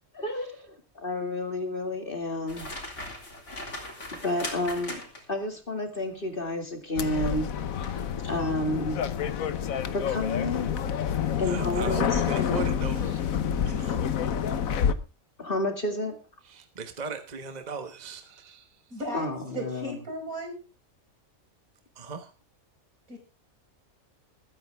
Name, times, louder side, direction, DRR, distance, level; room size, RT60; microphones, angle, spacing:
voice 1, 0.1-2.7 4.1-5.0 5.3-7.5 8.2-9.0 9.9-10.8 11.4-12.6 15.4-16.2 19.1-20.0, left 1 dB, 40° left, 5 dB, 2.6 m, -30 dB
sound 1, 2.5-5.4 7.8-8.1 8.6-8.8, left 1 dB, 60° left, 3.9 m, -39 dB
sound 2, 7.0-14.9, left 8 dB, 85° left, 1.4 m, -28 dB
voice 2, 11.2-13.2 13.6-14.0 16.4-18.8 21.9-22.3, right 5 dB, 30° right, 8 dB, 1.4 m, -38 dB
voice 3, 18.9-19.3 19.5-20.6 23.1-23.2, right 1 dB, 85° right, 3 dB, 5.6 m, -35 dB
21.0 x 9.7 x 3.5 m, 0.32 s
omnidirectional pair, 1.4 m